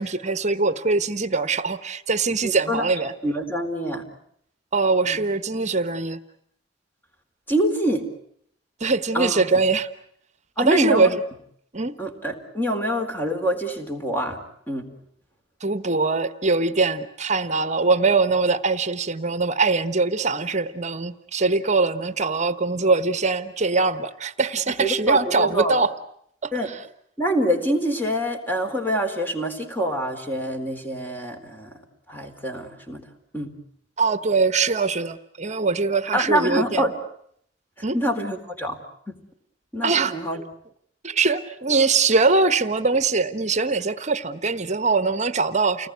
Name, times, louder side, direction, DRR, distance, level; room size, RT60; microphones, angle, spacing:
voice 1, 0.0-3.1 4.7-6.2 8.8-9.9 10.6-11.2 11.7-11.9 15.6-25.9 26.4-26.8 34.0-36.9 37.8-38.0 39.8-40.5 41.0-45.9, right 4 dB, 40° right, 12 dB, 1.2 m, -22 dB
voice 2, 2.4-2.9 3.2-4.0 5.0-5.2 7.5-8.0 9.1-9.5 10.6-11.1 12.0-14.4 14.7-14.9 24.8-25.8 26.5-26.7 27.2-31.7 32.1-33.0 33.3-33.5 36.1-37.0 37.9-38.8 39.1-39.2 39.7-40.4, equal, 10° left, 4 dB, 4.1 m, -25 dB
30.0 x 20.0 x 9.5 m, 0.69 s
head